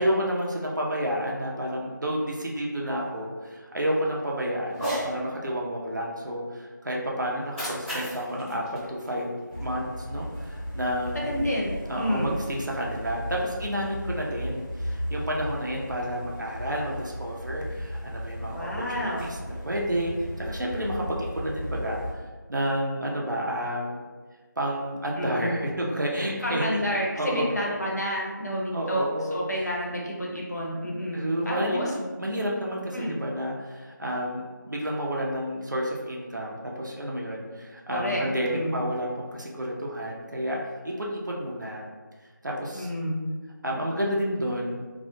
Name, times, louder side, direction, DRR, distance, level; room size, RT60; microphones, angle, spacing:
voice 1, 0.0-9.3 9.6-11.5 11.9-18.7 19.0-19.4 19.6-22.0 22.5-24.0 24.6-26.7 27.2-27.5 28.7-29.4 31.1-41.8 42.4-42.9 43.6-44.8, equal, 65° right, -2 dB, 0.5 m, -30 dB
Cat, 4.7-5.1 7.3-9.7, equal, 5° right, 0.6 m, -35 dB
sound 1, 9.5-22.1, equal, 90° left, 0.9 m, -36 dB
voice 2, 11.2-12.3 18.5-19.2 25.2-25.5 26.4-29.1 29.3-31.9 32.9-33.1 37.9-38.2 38.5-38.8 42.7-43.2, equal, 55° left, -3 dB, 0.6 m, -29 dB
2.3 x 2.1 x 2.7 m, 1.4 s
figure-of-eight pair, 170°, 11 cm